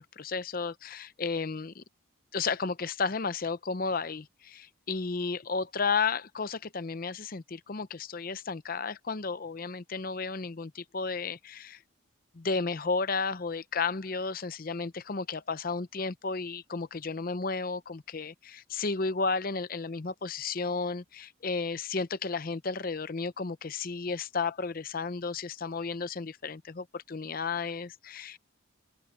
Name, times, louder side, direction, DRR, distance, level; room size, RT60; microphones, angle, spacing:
voice 1, 0.0-1.8 2.3-11.8 12.3-28.4, left 4 dB, 45° left, 0.7 m, -33 dB
open air
head